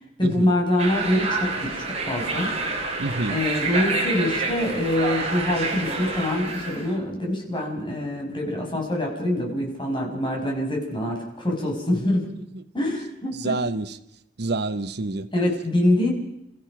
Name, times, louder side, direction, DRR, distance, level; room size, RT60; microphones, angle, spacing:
voice 1, 0.2-2.5 3.3-12.3 12.7-13.6 15.3-16.1, left 1 dB, 25° left, 5.6 m, -25 dB
sound 1, 0.8-6.9, right 3 dB, 35° right, 3.8 m, -28 dB
voice 2, 3.0-3.4 12.5-12.6 13.4-14.0 14.4-15.3, right 2 dB, 60° right, 1.0 m, -27 dB
30.0 x 15.0 x 6.0 m
head